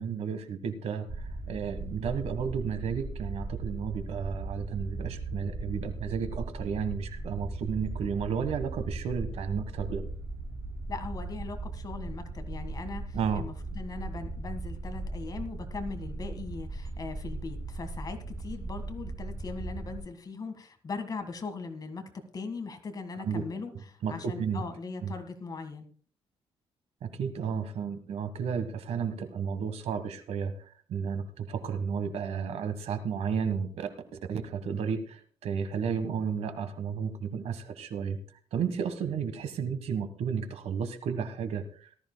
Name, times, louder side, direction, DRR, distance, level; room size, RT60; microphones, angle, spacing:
voice 1, 0.0-10.0 13.1-13.4 23.2-23.4 24.0-24.6 25.0-25.1 27.0-33.9 34.3-38.2 38.5-41.9, right 6 dB, 80° right, 9 dB, 1.4 m, -32 dB
sound 1, 1.1-20.0, right 2 dB, 20° right, 5.0 m, -38 dB
voice 2, 10.9-25.9, left 4 dB, 35° left, 8 dB, 1.7 m, -40 dB
18.5 x 13.5 x 2.3 m, 0.43 s
cardioid pair, 120°, 11 cm